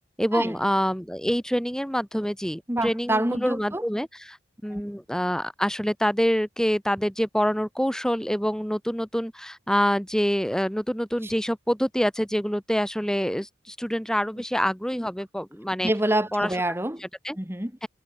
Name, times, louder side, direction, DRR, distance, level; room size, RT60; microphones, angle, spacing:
voice 1, 0.2-4.4 4.6-15.9 16.3-16.5 17.0-17.4 17.8-17.9, equal, 5° left, 4.3 m, -26 dB
voice 2, 2.7-3.8 4.7-4.8 15.8-17.0 17.4-17.7, right 1 dB, 15° right, 1.7 m, -26 dB
head